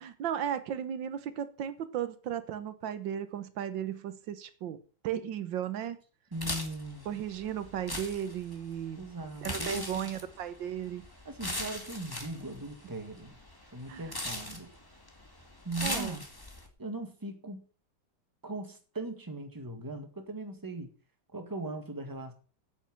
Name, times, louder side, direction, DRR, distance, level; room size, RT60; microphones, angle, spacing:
voice 1, 0.0-4.8 5.0-6.0 7.1-9.0 9.4-11.0 13.9-14.2 15.8-16.1, right 9 dB, 85° right, 1.7 m, -35 dB
sound 1, 6.3-16.7, left 1 dB, 10° left, 1.9 m, -40 dB
voice 2, 6.3-7.1 9.0-10.1 11.2-13.3 13.6-14.7 15.6-16.2 16.8-17.6 18.4-20.9 21.3-22.3, right 2 dB, 10° right, 1.7 m, -39 dB
8.9 x 8.5 x 7.5 m
omnidirectional pair, 2.0 m